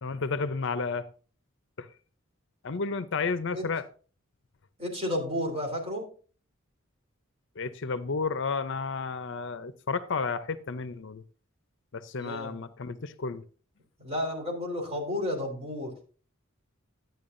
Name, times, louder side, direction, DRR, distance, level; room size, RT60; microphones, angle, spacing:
voice 1, 0.0-1.1 1.8-1.9 2.6-3.8 7.6-11.2 11.9-13.4, left 4 dB, 65° left, 0.6 m, -32 dB
voice 2, 4.8-6.1 12.2-12.6 14.0-15.9, left 1 dB, 30° right, 3.5 m, -32 dB
12.5 x 9.2 x 2.6 m
head